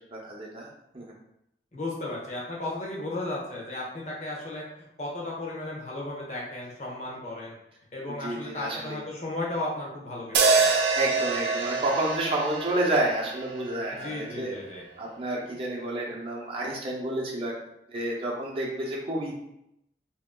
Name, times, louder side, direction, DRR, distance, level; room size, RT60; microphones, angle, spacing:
voice 1, 0.1-0.7 0.9-1.0 8.1-9.0 10.9-14.5 15.0-17.6 17.9-19.3, right 1 dB, 30° right, -3 dB, 0.7 m, -30 dB
voice 2, 1.7-4.6 5.0-7.5 7.9-10.7 13.9-14.8, left 2 dB, 40° left, -4 dB, 1.1 m, -35 dB
sound 1, 10.3-14.6, right 4 dB, 80° right, 0.5 m, -26 dB
3.1 x 2.9 x 3.7 m, 0.81 s
head